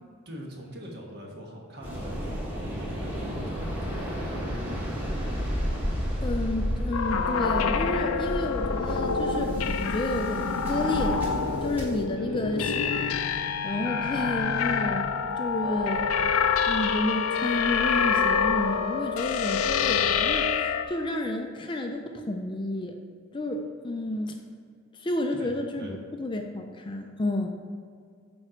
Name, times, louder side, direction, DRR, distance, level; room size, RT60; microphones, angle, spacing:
voice 1, 0.2-4.5 12.1-13.0 25.3-25.5 25.8-25.9, equal, 50° right, -1 dB, 1.3 m, -43 dB
Waves surf, 1.8-12.0, equal, 10° right, 1.3 m, -32 dB
voice 2, 6.2-13.1 13.6-15.1 15.4-16.1 16.7-22.9 23.3-24.4 25.0-27.5, left 1 dB, 20° left, 4 dB, 0.4 m, -31 dB
sound 1, 6.9-20.8, left 6 dB, 85° left, 0.5 m, -27 dB
7.3 x 4.4 x 5.0 m, 2.2 s
head